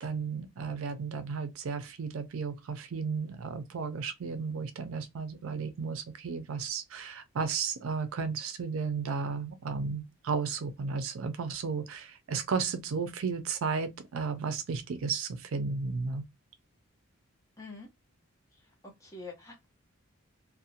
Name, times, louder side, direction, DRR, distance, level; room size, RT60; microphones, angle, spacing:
voice 1, 0.0-16.2, right 5 dB, 75° right, 0.4 m, -34 dB
voice 2, 17.6-17.9 18.5-19.6, left 3 dB, 15° left, 0.8 m, -46 dB
2.5 x 2.1 x 2.7 m
head